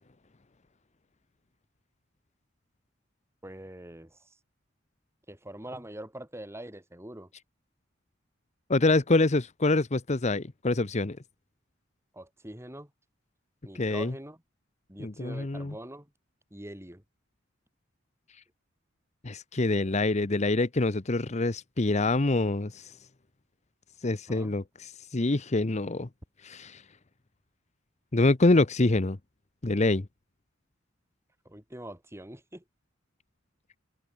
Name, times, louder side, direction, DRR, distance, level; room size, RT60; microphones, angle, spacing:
voice 1, 3.4-4.2 5.3-7.3 12.1-12.9 13.6-14.4 14.9-16.1 16.5-17.0 24.3-24.5 31.5-32.6, right 1 dB, 15° right, 5.5 m, -43 dB
voice 2, 8.7-11.2 13.7-14.1 15.0-15.7 19.2-22.9 24.0-26.1 26.4-26.8 28.1-29.2 29.6-30.1, left 2 dB, 35° left, 0.9 m, -26 dB
head